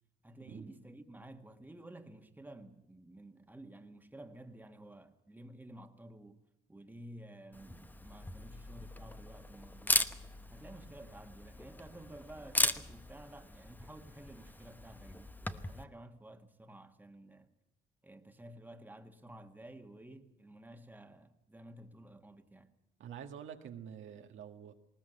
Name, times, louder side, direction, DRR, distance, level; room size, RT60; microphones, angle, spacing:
voice 1, 0.2-6.4 6.7-10.1 10.5-17.5 18.0-22.7, right 1 dB, 10° right, 1.7 m, -52 dB
Camera, 7.5-15.8, left 1 dB, 10° left, 1.0 m, -38 dB
voice 2, 23.0-24.7, right 8 dB, 80° right, 1.8 m, -47 dB
19.5 x 19.0 x 8.0 m
cardioid pair, 90°, 20 cm